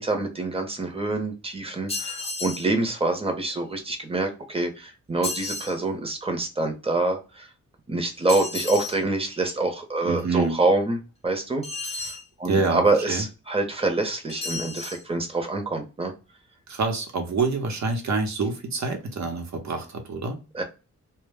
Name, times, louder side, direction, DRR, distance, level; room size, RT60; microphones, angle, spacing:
voice 1, 0.0-7.5 7.9-11.0 11.2-11.6 11.9-16.1 20.5-20.6, right 2 dB, 20° right, 5 dB, 0.7 m, -26 dB
sound 1, 1.9-2.7 5.2-5.8 8.3-9.0 11.6-12.3 14.3-15.0, left 3 dB, 20° left, 0.6 m, -32 dB
voice 2, 10.0-10.6 12.5-13.2 16.7-20.4, right 4 dB, 65° right, 4 dB, 0.8 m, -27 dB
2.1 x 2.0 x 3.3 m, 0.30 s
wide cardioid pair, 105°, 30 cm